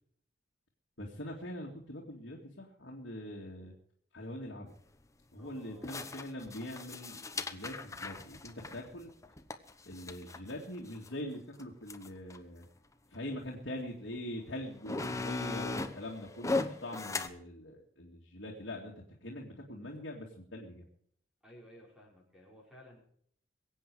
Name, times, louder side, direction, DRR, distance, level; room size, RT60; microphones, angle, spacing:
voice 1, 1.0-3.7 4.1-4.8 5.3-9.1 9.9-12.7 13.1-20.8, left 1 dB, 65° left, -2 dB, 2.3 m, -43 dB
sound 1, 4.7-4.8 5.8-11.1 11.6-11.7 11.9-12.4 13.1-13.2 14.1-14.2 14.6-17.3, left 3 dB, 15° left, 0.9 m, -38 dB
voice 2, 5.4-6.0 21.4-23.0, equal, 5° right, -3 dB, 5.4 m, -56 dB
22.5 x 8.3 x 4.8 m, 0.63 s
head